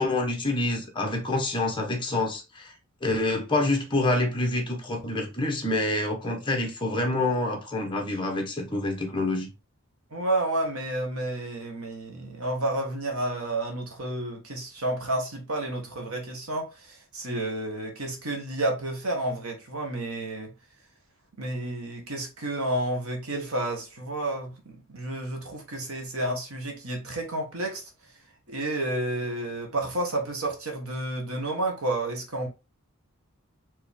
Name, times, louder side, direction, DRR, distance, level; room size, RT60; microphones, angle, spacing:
voice 1, 0.0-2.7 3.0-9.5, left 2 dB, 25° left, 1.1 m, -27 dB
voice 2, 10.1-20.5 21.4-27.8 28.5-32.5, right 1 dB, 85° right, 1.5 m, -30 dB
4.5 x 3.1 x 3.6 m
head